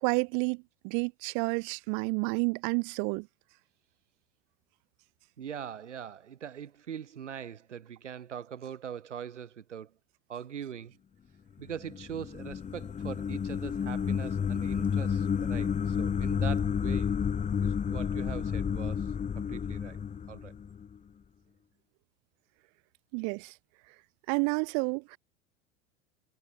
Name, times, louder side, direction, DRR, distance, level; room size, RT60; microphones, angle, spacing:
voice 1, 0.0-3.3 23.1-23.5 24.3-25.2, right 40 dB or more, 50° right, 2.7 m, -30 dB
voice 2, 5.4-9.9 10.3-10.9 11.6-17.1 17.6-20.0 20.3-20.5, right 8 dB, 75° right, 2.3 m, -42 dB
sound 1, 11.7-21.0, left 7 dB, 20° left, 1.7 m, -31 dB
figure-of-eight pair, 80°, 36 cm